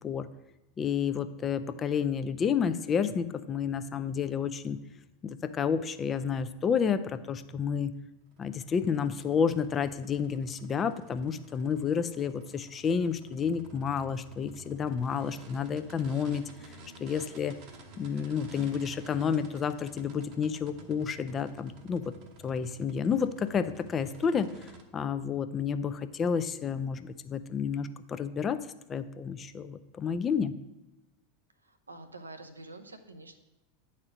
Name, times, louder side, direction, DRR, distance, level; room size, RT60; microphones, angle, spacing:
voice 1, 0.8-4.8 5.2-7.9 8.4-16.4 17.0-17.5 18.0-22.1 22.4-28.6 28.9-30.5, left 6 dB, 25° left, 11 dB, 0.5 m, -30 dB
sound 1, 8.2-24.8, right 2 dB, 50° right, 1.0 m, -52 dB
voice 2, 31.6-33.4, right 2 dB, 80° right, 8 dB, 0.7 m, -47 dB
9.7 x 4.3 x 5.1 m, 1.0 s
figure-of-eight pair, 85°, 0 cm